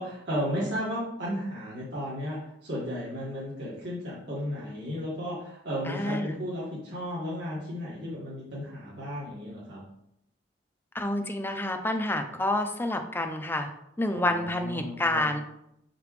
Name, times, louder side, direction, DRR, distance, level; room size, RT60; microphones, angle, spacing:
voice 1, 0.0-9.8 14.1-15.2, equal, 65° right, -8 dB, 2.0 m, -34 dB
voice 2, 5.9-6.4 10.9-13.7 14.0-15.4, left 1 dB, 10° left, 6 dB, 0.6 m, -28 dB
6.9 x 5.1 x 3.2 m, 0.76 s
head